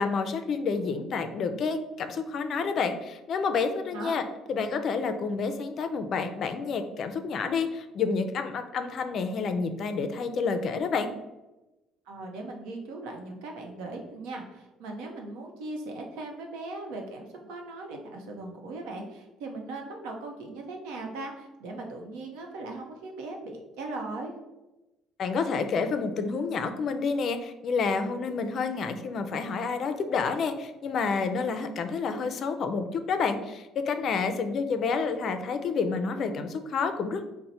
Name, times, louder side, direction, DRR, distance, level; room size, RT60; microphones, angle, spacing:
voice 1, 0.0-11.1 25.2-37.2, left 5 dB, 55° left, 8 dB, 0.4 m, -29 dB
voice 2, 12.1-24.3, right 2 dB, 90° right, 2 dB, 0.7 m, -39 dB
4.1 x 2.1 x 4.1 m, 1.0 s
cardioid pair, 95°, 0 cm